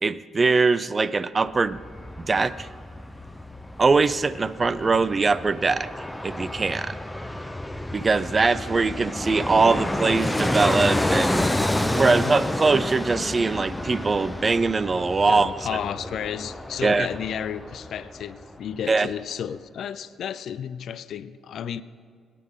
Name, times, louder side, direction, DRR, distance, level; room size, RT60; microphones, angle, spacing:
voice 1, 0.0-1.8 2.2-2.7 3.8-5.9 6.2-7.0 7.9-11.4 11.9-15.5 16.8-17.1 18.9-19.1, right 4 dB, 30° right, 16 dB, 0.4 m, -22 dB
Fixed-wing aircraft airplane, 1.5-18.4 18.7-18.8, left 1 dB, 10° left, 0.7 m, -29 dB
voice 2, 12.1-12.4 15.3-21.8, left 9 dB, 65° left, 15 dB, 0.5 m, -32 dB
21.5 x 10.0 x 3.7 m, 2.1 s
cardioid pair, 90°, 0 cm